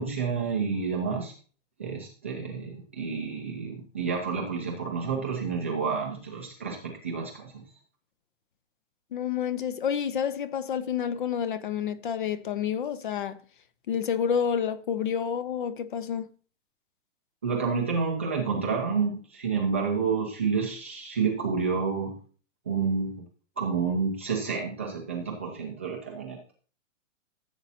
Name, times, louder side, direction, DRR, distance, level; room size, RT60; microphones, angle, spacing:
voice 1, 0.0-1.3 1.8-7.5 17.4-22.2 22.7-23.2 23.6-26.5, right 5 dB, 10° right, 0.4 m, -29 dB
voice 2, 9.1-13.4 13.9-16.3, left 8 dB, 40° left, 0.6 m, -29 dB
15.0 x 8.0 x 2.8 m
hypercardioid pair, 175°, 38 cm